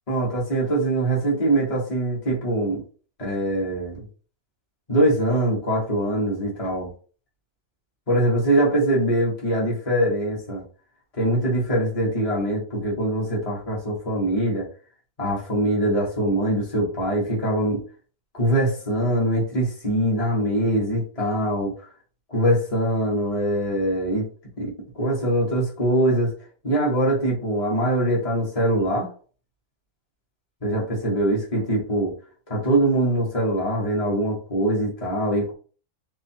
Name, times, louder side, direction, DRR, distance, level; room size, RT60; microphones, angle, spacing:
voice 1, 0.1-2.8 3.2-4.0 4.9-6.9 8.1-10.6 11.2-14.7 15.2-17.8 18.3-21.7 22.3-24.3 24.6-26.3 26.6-29.1 30.6-32.1 32.5-35.5, right 1 dB, 25° left, -4 dB, 1.5 m, -23 dB
3.5 x 3.0 x 4.5 m, 0.39 s
omnidirectional pair, 1.5 m